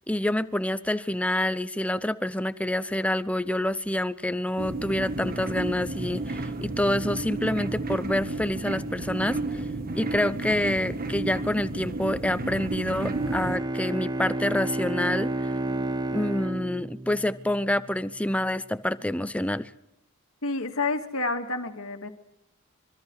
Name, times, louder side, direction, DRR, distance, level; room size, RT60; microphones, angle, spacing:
voice 1, 0.1-9.6 9.9-15.3 16.1-19.7, left 1 dB, 5° left, 14 dB, 0.7 m, -27 dB
sound 1, 4.6-13.6, right 2 dB, 40° right, 1.5 m, -32 dB
Bowed string instrument, 13.0-17.9, right 2 dB, 20° right, 1.1 m, -31 dB
voice 2, 20.4-22.1, left 3 dB, 65° left, 6 dB, 2.4 m, -29 dB
25.5 x 24.0 x 4.9 m, 0.89 s
head